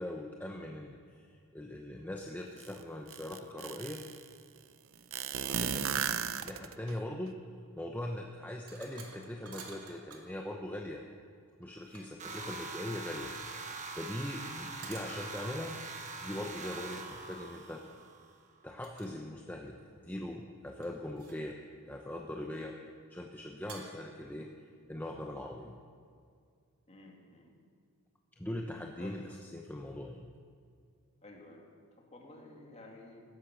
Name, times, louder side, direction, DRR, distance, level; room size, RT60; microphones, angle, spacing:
voice 1, 0.0-4.0 5.5-6.0 6.4-7.4 7.7-11.0 11.6-13.3 13.9-15.8 16.2-17.8 18.6-19.8 20.0-21.6 21.9-22.8 23.1-24.5 24.9-25.8 28.4-30.3, left 1 dB, 10° left, 1 dB, 0.8 m, -41 dB
sound 1, 2.6-2.7 3.1-4.2 5.1-6.9, right 7 dB, 60° right, 0.7 m, -34 dB
sound 2, 8.7-10.3 11.6-12.3 14.8-15.2 16.9-17.2 18.8-19.2 19.5-20.1 20.8-21.6 23.7-24.2, right 5 dB, 85° right, 2.4 m, -52 dB
sound 3, 12.2-18.3, right 4 dB, 35° right, 1.3 m, -43 dB
voice 2, 26.9-27.5 29.0-29.2 31.2-33.2, left 2 dB, 30° left, 0 dB, 2.6 m, -54 dB
17.0 x 13.0 x 6.2 m, 2.2 s
head